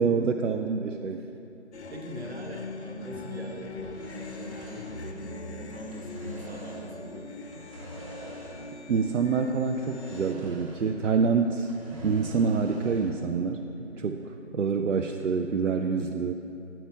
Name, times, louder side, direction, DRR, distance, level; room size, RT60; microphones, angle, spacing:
voice 1, 0.0-1.2 8.9-11.7 12.0-13.6 14.0-14.2 14.5-16.3, right 5 dB, 80° right, 4 dB, 0.5 m, -26 dB
sound 1, 1.7-10.3, left 3 dB, 65° left, 0.6 m, -41 dB
voice 2, 1.9-7.3 7.5-7.6 13.7-14.1, right 1 dB, 55° right, 2 dB, 1.2 m, -42 dB
sound 2, 3.7-5.5 5.7-7.0 7.5-8.9 9.1-9.2 9.8-11.1 11.4-13.2, equal, 25° right, 1.3 m, -44 dB
8.7 x 4.5 x 6.4 m, 2.7 s
figure-of-eight pair, 160°, 37 cm